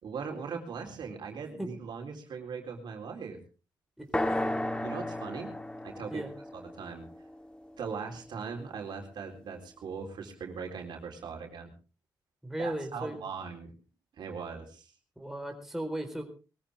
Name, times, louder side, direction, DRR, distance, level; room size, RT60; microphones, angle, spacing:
voice 1, 0.0-3.4 4.8-5.5 5.8-6.2 6.5-7.1 7.8-11.7 12.6-13.7 14.2-14.9, right 5 dB, 70° right, 2 dB, 3.9 m, -40 dB
voice 2, 4.0-4.5 6.1-6.3 12.4-13.2 15.2-16.2, right 1 dB, 5° right, 4 dB, 4.2 m, -36 dB
sound 1, 4.1-8.1, left 1 dB, 10° left, 1.9 m, -34 dB
21.5 x 14.5 x 3.6 m, 0.34 s
cardioid pair, 80°, 8 cm